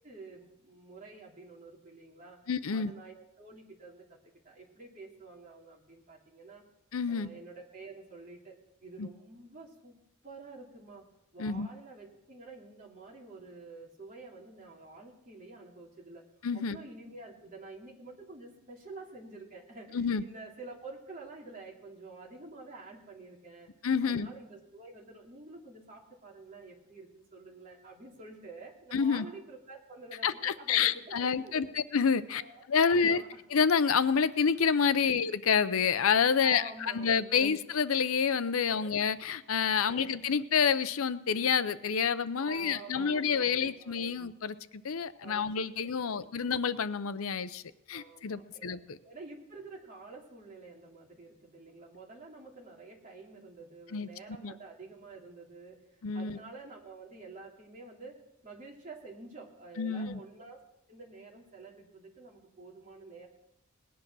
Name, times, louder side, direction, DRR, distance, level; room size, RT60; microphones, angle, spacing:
voice 1, 0.0-2.4 2.7-4.2 4.4-6.6 7.1-11.1 11.3-16.2 16.5-23.7 24.0-31.7 32.3-33.4 35.0-35.2 36.4-37.6 38.8-38.9 39.8-40.2 42.4-44.3 45.2-46.3 47.9-60.6 60.9-63.3, right 3 dB, 35° right, -2 dB, 2.9 m, -49 dB
voice 2, 2.5-2.9 6.9-7.3 9.0-9.1 11.4-11.7 16.4-16.8 19.9-20.2 23.8-24.3 28.9-29.2 30.2-31.7 31.9-32.4 32.7-33.2 33.5-44.5 44.8-47.6 47.9-48.8 53.9-54.1 54.4-54.5 56.0-56.4 59.8-60.2, left 6 dB, 70° left, 14 dB, 0.6 m, -28 dB
19.0 x 10.0 x 6.2 m, 0.87 s
head